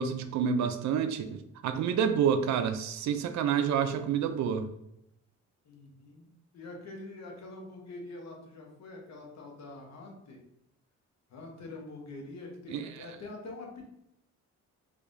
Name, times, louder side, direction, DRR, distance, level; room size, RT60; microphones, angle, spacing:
voice 1, 0.0-4.7 12.7-12.8, right 7 dB, 65° right, 9 dB, 0.4 m, -28 dB
voice 2, 5.6-6.3 6.5-10.4 11.3-13.9, left 2 dB, 60° left, 1 dB, 1.0 m, -45 dB
3.4 x 3.4 x 2.6 m, 0.80 s
cardioid pair, 90°, 30 cm